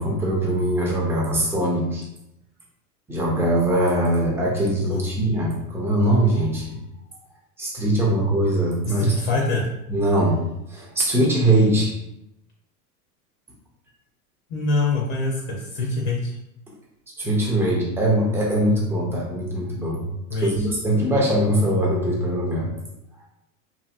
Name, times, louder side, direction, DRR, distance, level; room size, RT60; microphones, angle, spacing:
voice 1, 0.0-2.0 3.1-6.8 7.6-9.1 9.9-10.4 10.7-11.9 17.2-20.1 20.4-22.7, right 1 dB, 5° right, -3 dB, 0.4 m, -21 dB
voice 2, 9.0-9.7 14.5-16.3 20.3-20.5, left 3 dB, 50° left, -2 dB, 0.7 m, -24 dB
2.8 x 2.7 x 2.4 m, 0.85 s
hypercardioid pair, 120°, 45 cm